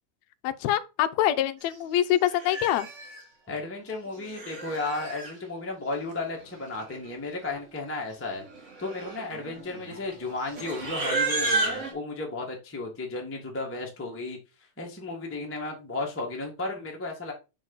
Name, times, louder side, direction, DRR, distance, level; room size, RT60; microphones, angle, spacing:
voice 1, 0.4-2.9, left 12 dB, 80° left, 1.6 m, -25 dB
Livestock farm animals working animals, 1.7-1.9 2.2-3.2 4.1-5.3 6.4-6.5 6.7-7.1 7.4-7.7 8.3-11.9, right 3 dB, 35° right, 1.2 m, -32 dB
voice 2, 3.5-8.4 8.8-14.4 14.8-17.3, left 3 dB, 15° left, 0.5 m, -34 dB
6.6 x 4.4 x 3.9 m
omnidirectional pair, 3.6 m